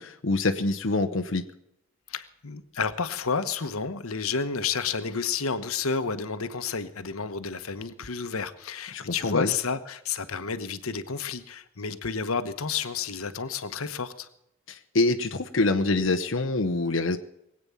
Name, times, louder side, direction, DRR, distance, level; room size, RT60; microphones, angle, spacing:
voice 1, 0.0-1.4 8.9-9.5 14.7-17.2, left 2 dB, 65° left, 4 dB, 0.9 m, -25 dB
voice 2, 2.1-14.3, left 5 dB, 90° left, 11 dB, 1.1 m, -31 dB
21.5 x 8.9 x 7.0 m, 0.81 s
head